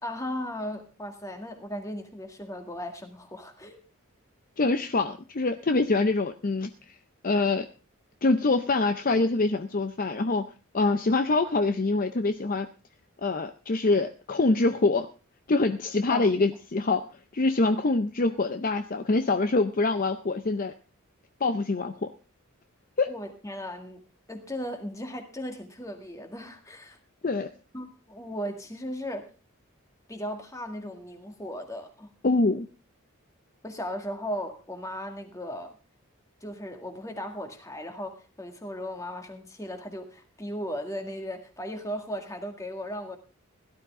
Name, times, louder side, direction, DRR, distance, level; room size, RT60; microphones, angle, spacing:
voice 1, 0.0-3.8 16.1-16.3 23.1-27.0 27.7-29.3 30.1-32.1 33.6-35.8 36.4-43.2, equal, 15° left, 5 dB, 1.9 m, -36 dB
voice 2, 4.6-7.0 7.2-7.7 8.2-10.5 10.7-12.7 13.2-15.1 15.5-17.1 17.3-20.7 21.4-22.1 23.0-23.1 27.2-27.5 32.2-32.7, left 3 dB, 40° left, 9 dB, 0.6 m, -25 dB
17.0 x 12.0 x 3.7 m, 0.32 s
head